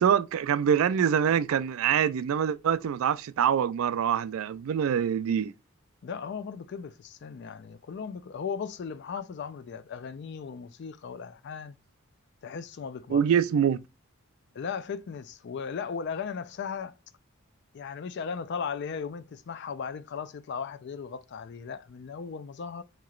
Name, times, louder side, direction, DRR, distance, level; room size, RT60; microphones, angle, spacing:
voice 1, 0.0-5.5 13.1-13.8, right 8 dB, 70° right, 0.3 m, -25 dB
voice 2, 6.0-11.8 12.4-13.2 14.5-16.9 17.7-22.8, left 6 dB, 50° left, 0.3 m, -37 dB
3.0 x 2.9 x 2.3 m
head